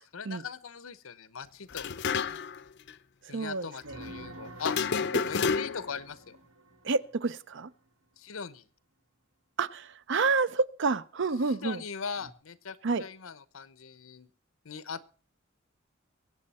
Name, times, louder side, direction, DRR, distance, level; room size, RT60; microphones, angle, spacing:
voice 1, 0.0-1.9 3.3-4.8 5.3-6.4 8.2-8.7 11.4-14.3 14.6-15.1, left 6 dB, 90° left, 16 dB, 0.9 m, -40 dB
sound 1, 1.7-2.6 2.9-3.0 4.6-6.0, left 5 dB, 55° left, 0.6 m, -29 dB
voice 2, 3.3-4.0 6.8-7.7 9.6-11.8 12.8-13.0, right 4 dB, 60° right, 16 dB, 0.6 m, -29 dB
sound 2, 3.8-7.6 12.1-12.3, right 1 dB, 85° right, 1.6 m, -48 dB
23.0 x 8.5 x 4.2 m, 0.40 s
head